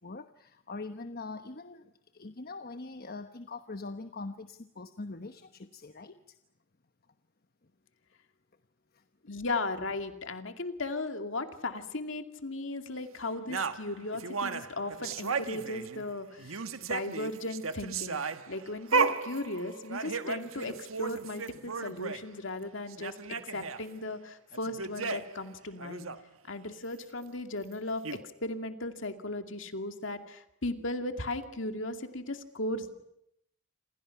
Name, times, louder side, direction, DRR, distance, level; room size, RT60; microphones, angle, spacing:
voice 1, 0.0-6.3 8.9-9.0, left 3 dB, 45° left, 9 dB, 1.1 m, -43 dB
voice 2, 9.2-16.6 16.9-18.2 18.5-23.1 23.5-26.1 26.5-33.0, left 2 dB, 65° left, 7 dB, 2.5 m, -36 dB
sound 1, 13.5-16.1 16.4-22.2 22.6-22.7 22.9-23.8 24.5-25.4 25.8-26.2 27.7-27.8 28.0-28.2, right 5 dB, 85° right, 1.5 m, -34 dB
28.5 x 27.0 x 5.9 m, 0.77 s
head